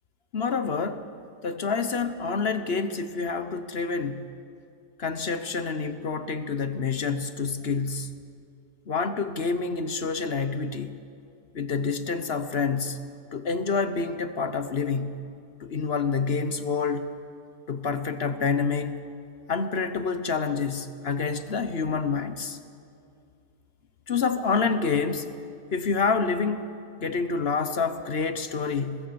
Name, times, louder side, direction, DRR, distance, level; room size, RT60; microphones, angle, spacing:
voice 1, 0.3-1.1 1.4-4.2 5.0-8.1 8.9-11.0 11.5-13.0 13.3-15.1 15.6-17.1 17.7-19.0 19.5-22.6 24.1-25.3 25.7-26.6 27.0-29.0, left 5 dB, 45° left, 10 dB, 1.0 m, -27 dB
24.5 x 20.5 x 7.0 m, 2.4 s
omnidirectional pair, 1.7 m